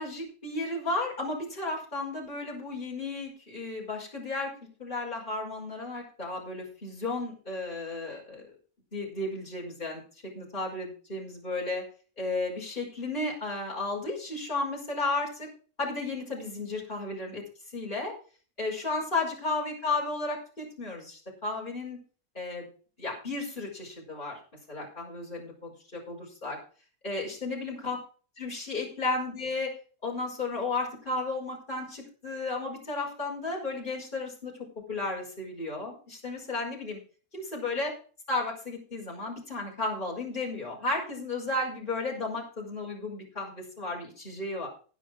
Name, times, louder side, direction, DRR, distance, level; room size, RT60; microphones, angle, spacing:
voice 1, 0.0-4.5 4.8-8.4 8.9-11.8 12.2-15.5 15.8-17.4 17.7-18.1 18.6-22.0 22.3-22.7 23.0-24.4 24.7-26.6 27.0-28.0 28.4-29.7 30.0-34.5 34.9-37.0 37.3-37.9 38.3-44.7, left 2 dB, 30° left, -4 dB, 5.9 m, -33 dB
11.0 x 10.5 x 4.8 m, 0.39 s
omnidirectional pair, 1.6 m